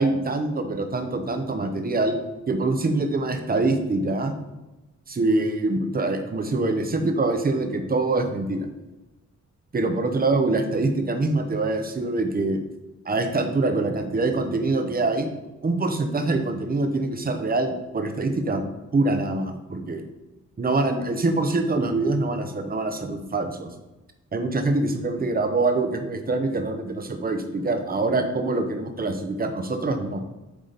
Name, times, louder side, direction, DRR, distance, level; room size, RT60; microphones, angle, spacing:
voice 1, 0.0-2.2 2.5-4.3 5.1-8.7 9.7-12.6 13.0-15.3 15.6-18.6 18.9-20.1 20.6-23.7 24.3-30.2, right 2 dB, 30° right, 6 dB, 0.7 m, -24 dB
8.1 x 5.0 x 3.9 m, 1.0 s
wide cardioid pair, 170°, 30 cm